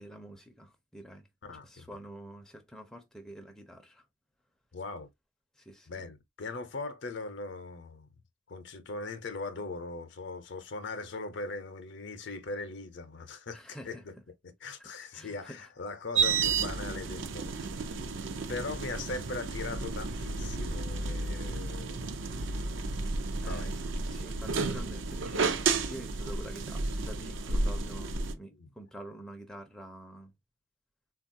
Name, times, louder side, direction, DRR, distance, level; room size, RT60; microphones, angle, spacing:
voice 1, 0.0-1.3 1.6-4.0 5.6-5.9 13.5-14.1 14.8-15.7 17.6-17.7 23.4-23.7 24.1-25.6 25.9-30.3, right 1 dB, 5° left, 0.4 m, -47 dB
voice 2, 1.4-1.9 4.7-5.1 5.9-8.1 8.5-14.1 14.4-17.6 18.5-22.2 23.4-23.7 28.5-28.7, left 3 dB, 60° left, 0.6 m, -40 dB
sound 1, 16.1-28.3, right 4 dB, 70° right, 0.5 m, -32 dB
3.8 x 2.3 x 2.5 m
head